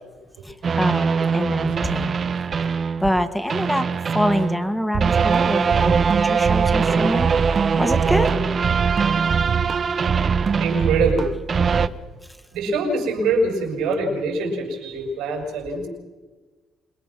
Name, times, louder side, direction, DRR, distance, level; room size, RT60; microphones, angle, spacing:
voice 1, 0.4-2.2 3.0-7.3 7.8-8.3, equal, 5° left, 7 dB, 1.7 m, -25 dB
sound 1, 0.6-3.2 3.5-11.9, right 6 dB, 45° right, 0.9 m, -21 dB
voice 2, 10.6-11.3 12.5-15.9, right 3 dB, 90° right, 2 dB, 6.4 m, -24 dB
26.5 x 21.0 x 6.2 m, 1.3 s
cardioid pair, 90°, 0 cm